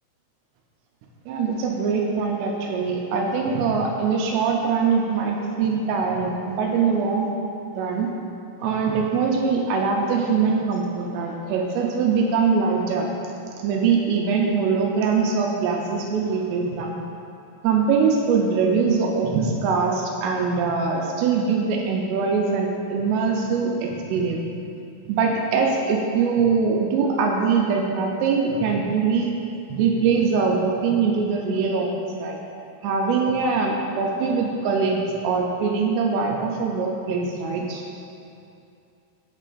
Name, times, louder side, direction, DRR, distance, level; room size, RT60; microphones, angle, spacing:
voice 1, 1.3-7.3 7.7-8.1 8.6-13.1 13.6-16.9 17.6-24.4 25.1-29.3 29.7-32.4 32.8-37.8, right 5 dB, 85° right, 0 dB, 2.4 m, -22 dB
8.9 x 7.5 x 2.5 m, 2.6 s
omnidirectional pair, 5.4 m